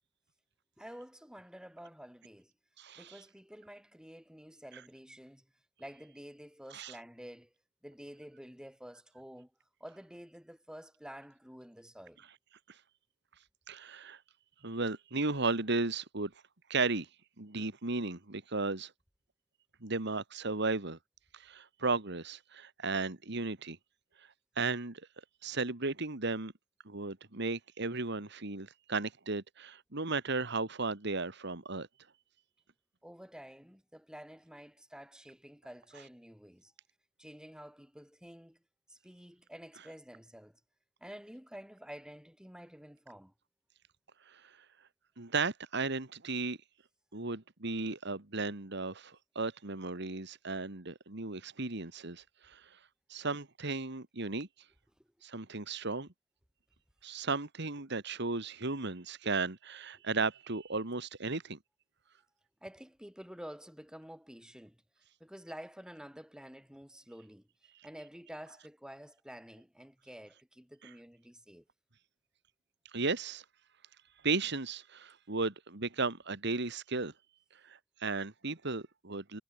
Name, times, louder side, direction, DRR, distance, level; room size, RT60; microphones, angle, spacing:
voice 1, 0.8-2.5 3.0-5.5 5.8-7.5 7.8-9.5 9.8-12.3 33.0-36.7 37.2-38.6 38.9-40.6 41.0-43.3 62.6-71.6, equal, 5° right, 5.9 m, -50 dB
voice 2, 2.8-3.2 6.7-7.0 12.7-12.8 13.7-14.2 14.6-16.3 16.7-17.1 17.4-18.9 19.8-21.0 21.3-23.8 24.2-24.3 24.6-25.0 25.4-26.5 26.9-31.9 44.3-44.6 45.2-46.6 47.1-52.8 53.1-54.5 55.2-56.1 57.0-61.6 72.9-73.4 74.2-77.1 77.5-79.4, right 3 dB, 60° right, 2.1 m, -35 dB
head